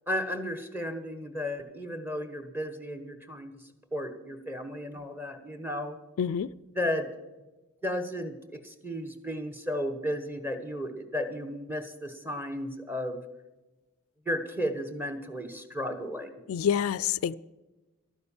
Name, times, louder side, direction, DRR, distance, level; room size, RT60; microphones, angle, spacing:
voice 1, 0.1-3.5 3.9-6.0 6.7-7.1 7.8-13.2 14.3-16.3, equal, 10° right, 1.1 m, -34 dB
voice 2, 6.2-6.5 16.5-17.3, left 8 dB, 75° left, 0.3 m, -27 dB
12.0 x 9.5 x 7.1 m
head